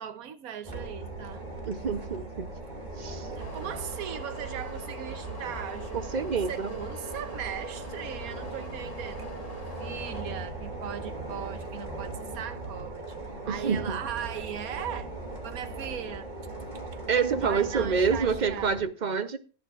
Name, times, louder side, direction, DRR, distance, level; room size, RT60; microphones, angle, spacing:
voice 1, 0.0-1.5 3.3-6.0 6.3-9.3 9.8-13.1 13.5-15.1 15.4-16.3 16.9-17.0 17.4-18.8, right 9 dB, 85° right, 1.3 m, -38 dB
sound 1, 0.6-18.8, right 2 dB, 30° right, 2.6 m, -39 dB
voice 2, 1.7-2.5 3.0-3.3 5.9-6.7 13.5-14.0 17.1-19.4, right 5 dB, 45° right, 0.6 m, -27 dB
sound 2, 3.4-10.2, left 1 dB, 25° left, 2.0 m, -45 dB
17.5 x 10.5 x 2.4 m
omnidirectional pair, 1.5 m